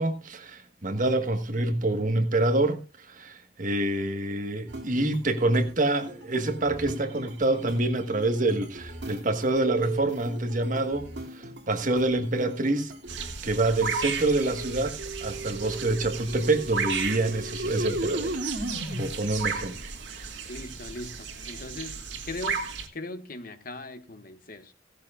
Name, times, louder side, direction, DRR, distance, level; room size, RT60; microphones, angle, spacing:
voice 1, 0.0-18.4 19.0-20.3, right 2 dB, 45° right, 1.4 m, -27 dB
sound 1, 4.7-13.4 13.8-19.1, right 1 dB, 65° right, 2.5 m, -37 dB
sound 2, 13.1-22.9, right 5 dB, 85° right, 2.0 m, -34 dB
voice 2, 20.5-22.0 22.3-22.6 22.9-24.7, left 2 dB, 50° left, 1.4 m, -39 dB
16.5 x 13.5 x 2.4 m
head